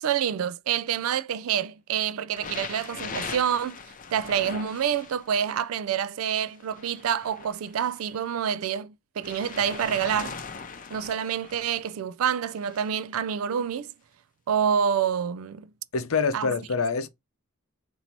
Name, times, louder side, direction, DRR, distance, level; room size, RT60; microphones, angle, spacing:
voice 1, 0.0-3.8 4.1-10.4 10.9-13.9 14.5-15.7 16.3-16.5, right 8 dB, 80° right, 0.4 m, -27 dB
sound 1, 2.4-5.5 6.4-8.2 9.2-11.8 12.5-12.9 13.7-13.8, left 5 dB, 40° left, 0.6 m, -40 dB
voice 2, 15.9-17.1, left 5 dB, 85° left, 0.6 m, -25 dB
4.1 x 2.7 x 4.4 m
head